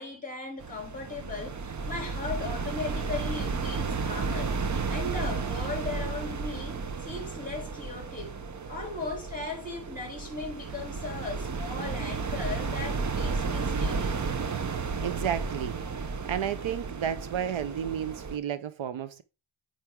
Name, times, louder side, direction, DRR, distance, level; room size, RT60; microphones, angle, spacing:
voice 1, 0.0-4.5 4.9-8.3 8.7-14.3, left 3 dB, 15° left, 3.2 m, -37 dB
sound 1, 0.6-18.4, right 4 dB, 35° right, 0.9 m, -33 dB
voice 2, 15.0-15.8 16.3-19.2, right 9 dB, 70° right, 0.8 m, -32 dB
9.1 x 4.5 x 3.7 m
wide cardioid pair, 105°, 49 cm